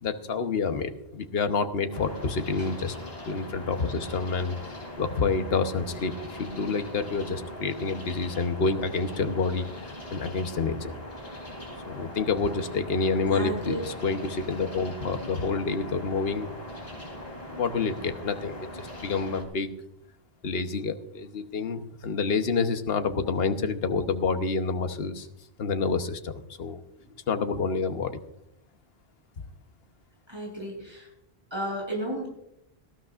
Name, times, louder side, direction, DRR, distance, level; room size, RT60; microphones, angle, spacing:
voice 1, 0.0-2.9 3.2-4.6 5.0-10.9 11.9-16.5 17.5-19.7 20.4-25.3 25.6-26.8 27.3-28.2, left 4 dB, 65° left, 8 dB, 1.2 m, -28 dB
sound 1, 1.9-19.4, left 1 dB, 40° left, 2.9 m, -41 dB
voice 2, 13.2-13.8 27.0-27.1 30.3-31.1 31.5-32.3, right 1 dB, 25° right, -1 dB, 6.6 m, -33 dB
19.0 x 14.5 x 2.5 m, 0.78 s
omnidirectional pair, 1.1 m